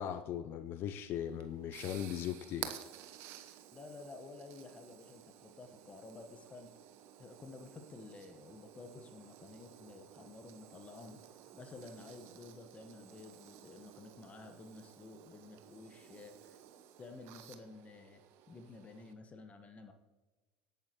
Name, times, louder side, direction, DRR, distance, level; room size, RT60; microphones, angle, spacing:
voice 1, 0.0-2.7, left 10 dB, 50° left, 0.5 m, -39 dB
Electric welding with tig - Full cycle, 1.1-19.1, right 11 dB, 60° right, 0.9 m, -53 dB
voice 2, 3.7-6.7 7.2-11.2 11.5-16.6 17.0-18.2 18.5-19.9, left 3 dB, 30° left, 1.2 m, -52 dB
17.5 x 8.9 x 3.0 m
hypercardioid pair, 75°, 5 cm